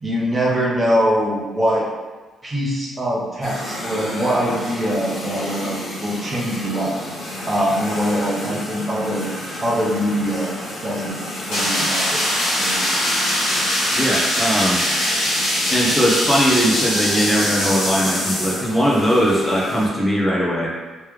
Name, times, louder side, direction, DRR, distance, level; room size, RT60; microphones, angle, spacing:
voice 1, 0.0-1.9 2.4-7.0 7.4-9.3 9.6-10.6 10.8-11.2 11.4-12.8, equal, 30° right, -4 dB, 0.9 m, -23 dB
sound 1, 3.4-19.9, left 1 dB, 65° left, 1.4 m, -32 dB
sound 2, 11.5-18.7, equal, 90° left, 1.2 m, -22 dB
voice 2, 13.9-14.8 15.7-20.7, equal, 15° left, -5 dB, 0.9 m, -19 dB
3.3 x 3.2 x 3.3 m, 1.3 s
cardioid pair, 90°, 0 cm